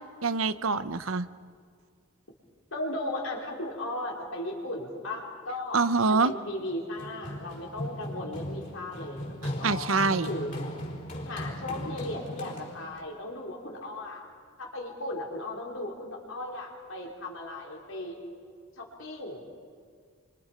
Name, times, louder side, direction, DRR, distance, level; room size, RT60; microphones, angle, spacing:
voice 1, 0.2-1.3 5.7-6.3 9.6-10.3, right 4 dB, 85° right, 13 dB, 1.0 m, -25 dB
voice 2, 2.7-9.2 9.6-10.5 11.3-14.2 14.6-18.2 18.8-19.4, left 1 dB, 75° left, -1 dB, 4.7 m, -36 dB
Run, 6.7-13.0, equal, 40° left, 4.6 m, -38 dB
28.0 x 26.0 x 5.3 m, 2.1 s
head